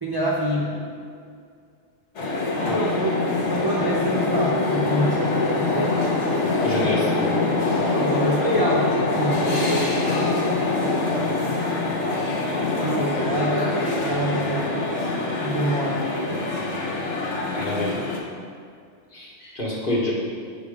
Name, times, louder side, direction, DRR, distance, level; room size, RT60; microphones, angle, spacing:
voice 1, 0.0-0.9 2.7-3.1 3.5-6.3 7.9-9.9 12.7-16.7, right 1 dB, 25° right, -4 dB, 0.5 m, -26 dB
sound 1, 2.2-18.2, left 3 dB, 60° left, 1.3 m, -24 dB
voice 2, 6.6-7.2 17.5-18.0 19.1-20.1, left 1 dB, 40° left, -5 dB, 1.5 m, -27 dB
7.1 x 5.1 x 4.9 m, 2.3 s
omnidirectional pair, 1.4 m